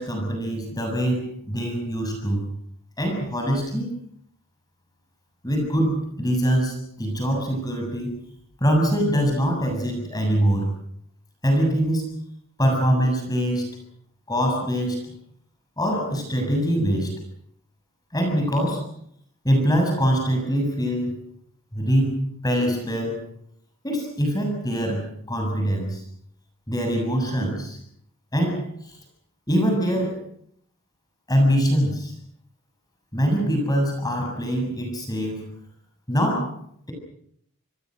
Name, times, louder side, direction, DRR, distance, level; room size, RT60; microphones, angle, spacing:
voice 1, 0.0-2.4 3.0-3.9 5.4-8.2 8.6-10.7 11.4-12.1 12.6-13.7 14.3-15.0 15.8-17.1 18.1-18.9 19.4-21.2 21.7-23.2 23.8-26.0 26.7-27.8 28.3-29.0 29.5-30.2 31.3-32.1 33.1-35.4 36.1-36.5, equal, 15° left, 2 dB, 7.2 m, -23 dB
27.5 x 22.0 x 6.4 m, 0.68 s
head